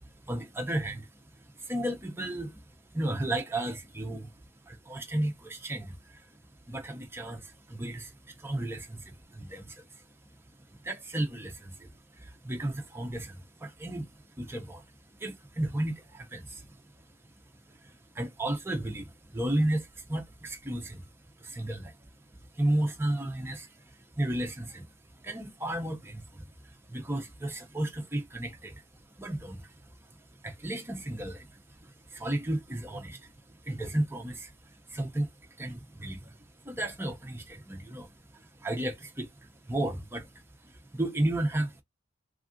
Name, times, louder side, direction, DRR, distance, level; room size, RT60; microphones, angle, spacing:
voice 1, 0.0-4.3 4.6-6.4 6.7-10.0 10.7-14.9 15.2-16.8 17.7-21.0 21.4-22.0 22.5-41.8, right 1 dB, 10° right, 0.5 m, -34 dB
3.4 x 2.3 x 2.5 m
head